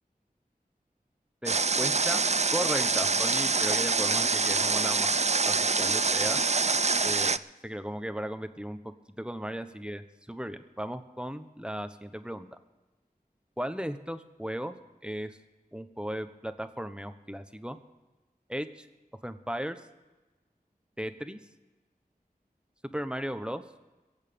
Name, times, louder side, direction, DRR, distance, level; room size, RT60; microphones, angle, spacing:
voice 1, 1.4-2.2 2.5-5.1 5.4-6.4 7.0-8.8 9.2-12.6 13.6-14.7 15.0-15.4 15.7-17.8 18.5-18.9 19.2-19.8 21.0-21.4 22.9-23.6, equal, 5° right, 9 dB, 1.1 m, -36 dB
Water, 1.5-7.4, right 4 dB, 45° right, 0.4 m, -25 dB
22.5 x 8.3 x 5.4 m, 1.1 s
wide cardioid pair, 40°, 16 cm